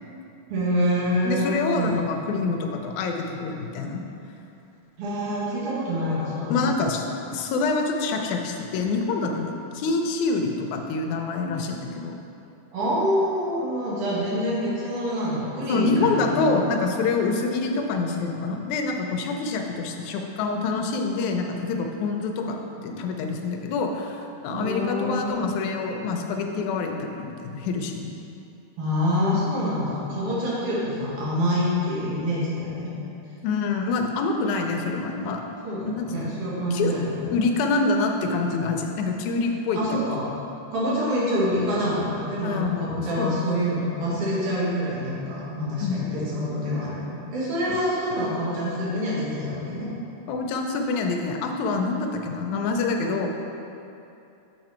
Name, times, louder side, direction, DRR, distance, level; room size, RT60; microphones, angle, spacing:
voice 1, 0.5-2.0 5.0-6.8 12.7-16.6 24.5-25.3 28.8-32.9 35.6-37.2 39.7-40.2 40.7-49.9, equal, 50° right, -7 dB, 2.2 m, -26 dB
voice 2, 1.2-4.0 6.5-7.0 7.3-12.1 15.7-28.2 33.4-35.4 35.8-36.3 36.7-36.9 37.3-39.8 42.4-43.4 45.8-46.0 47.7-47.8 50.3-53.3, left 3 dB, 80° left, 3 dB, 1.9 m, -26 dB
6.8 x 5.5 x 4.3 m, 2.8 s
omnidirectional pair, 3.6 m